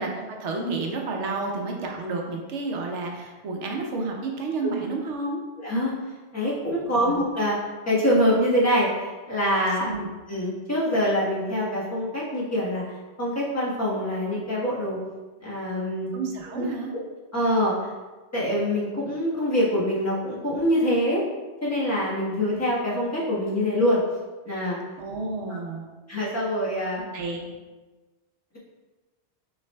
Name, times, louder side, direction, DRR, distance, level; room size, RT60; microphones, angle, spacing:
voice 1, 0.0-5.4 7.0-7.1 9.8-10.1 16.1-16.9 25.0-25.9 27.1-27.4, right 3 dB, 85° right, 1 dB, 1.0 m, -31 dB
voice 2, 5.6-5.9 6.3-7.6 7.8-9.9 10.3-15.0 15.4-16.1 16.5-16.6 16.9-17.0 17.3-17.7 18.3-21.2 21.6-24.0 24.4-24.8 26.1-27.0, equal, 15° left, -8 dB, 1.1 m, -24 dB
5.8 x 3.2 x 2.2 m, 1.2 s
omnidirectional pair, 1.2 m